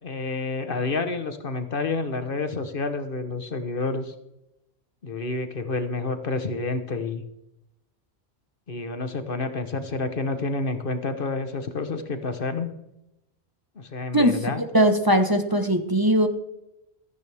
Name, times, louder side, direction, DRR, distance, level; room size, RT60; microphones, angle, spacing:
voice 1, 0.0-4.1 5.0-7.2 8.7-12.7 13.8-14.6, left 3 dB, 55° left, 8 dB, 1.3 m, -29 dB
voice 2, 14.1-16.3, equal, 20° right, 6 dB, 1.2 m, -20 dB
16.0 x 14.0 x 3.5 m, 0.87 s
omnidirectional pair, 1.1 m